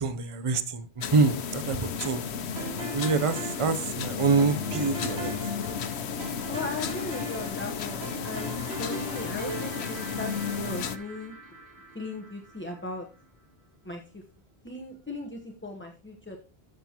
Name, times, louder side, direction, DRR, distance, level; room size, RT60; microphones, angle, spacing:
voice 1, 0.0-2.2 2.9-5.3, right 4 dB, 35° right, 11 dB, 0.7 m, -26 dB
sound 1, 1.0-11.0, left 7 dB, 85° left, 1.0 m, -33 dB
sound 2, 2.6-12.8, equal, 90° right, 3.4 m, -40 dB
voice 2, 6.5-11.4 11.9-13.1 13.8-14.2 14.6-16.4, left 2 dB, 10° left, 2 dB, 0.9 m, -37 dB
13.0 x 7.7 x 2.9 m, 0.36 s
omnidirectional pair, 1.1 m